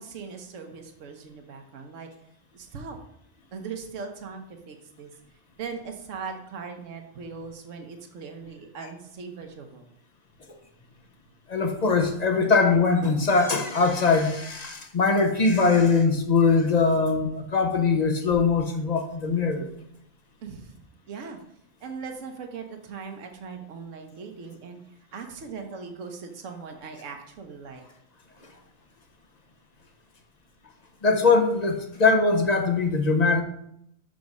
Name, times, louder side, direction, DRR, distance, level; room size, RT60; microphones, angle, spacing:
voice 1, 0.0-2.1 2.5-3.0 3.5-5.1 5.6-9.9 20.4-20.7 21.1-21.4 21.8-24.8 25.1-27.8, right 5 dB, 70° right, 4 dB, 1.3 m, -39 dB
voice 2, 11.5-19.7 28.4-28.5 31.0-33.4, left 4 dB, 40° left, 5 dB, 0.8 m, -21 dB
5.9 x 5.1 x 5.2 m, 0.74 s
omnidirectional pair, 1.3 m